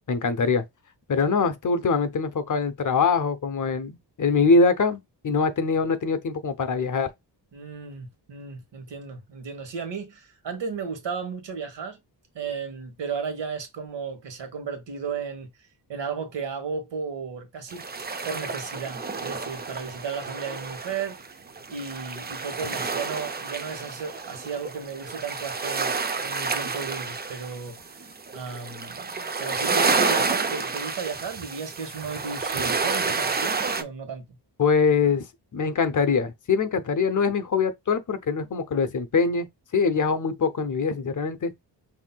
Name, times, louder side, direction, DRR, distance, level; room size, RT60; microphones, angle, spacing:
voice 1, 0.1-0.6 1.1-7.1 34.6-35.2 35.5-39.5 39.7-41.5, left 4 dB, 45° left, 0.7 m, -23 dB
voice 2, 7.5-12.0 12.3-15.5 15.9-17.8 18.2-21.4 21.7-34.2, right 5 dB, 75° right, 1.3 m, -34 dB
sound 1, 17.7-33.8, right 4 dB, 25° right, 0.4 m, -29 dB
5.7 x 2.7 x 2.2 m
wide cardioid pair, 135°, 43 cm